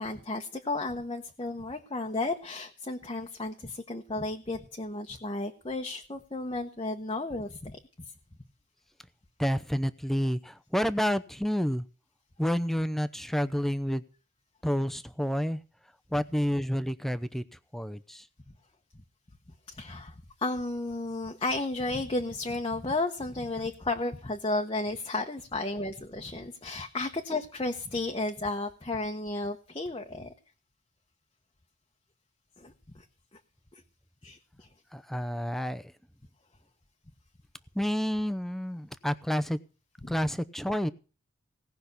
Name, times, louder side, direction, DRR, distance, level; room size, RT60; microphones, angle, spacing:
voice 1, 0.0-7.8 19.7-30.3 32.6-33.0 33.7-33.8 34.2-34.7 40.0-40.2, left 2 dB, 25° left, 2 dB, 1.0 m, -33 dB
voice 2, 9.4-11.8 12.4-14.0 14.6-15.6 16.1-17.4 17.7-18.3 34.9-35.9 37.7-39.6 40.1-40.9, equal, ahead, 12 dB, 0.6 m, -29 dB
17.5 x 5.9 x 8.2 m, 0.37 s
head